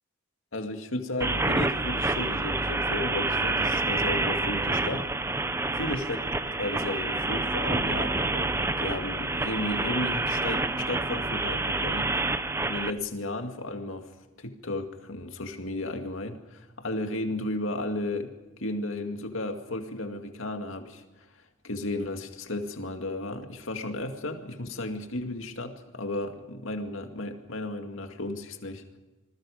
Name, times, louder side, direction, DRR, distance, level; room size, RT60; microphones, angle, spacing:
voice 1, 0.5-5.4 5.7-12.1 12.6-14.1 14.4-21.0 21.6-29.0, left 2 dB, 85° left, 5 dB, 2.2 m, -34 dB
sound 1, 1.2-12.9, right 2 dB, 15° right, 0.7 m, -28 dB
27.5 x 20.5 x 5.1 m, 1.1 s
head